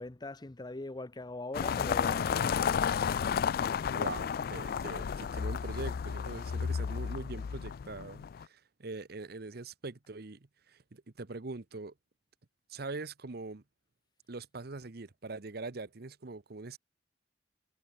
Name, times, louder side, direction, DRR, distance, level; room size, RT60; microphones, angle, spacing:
voice 1, 0.0-2.8, left 2 dB, 25° left, 0.7 m, -42 dB
sound 1, 1.5-8.4, left 7 dB, 55° left, 0.4 m, -32 dB
voice 2, 3.9-11.9 12.7-13.6 14.3-16.8, right 3 dB, 60° right, 0.9 m, -43 dB
head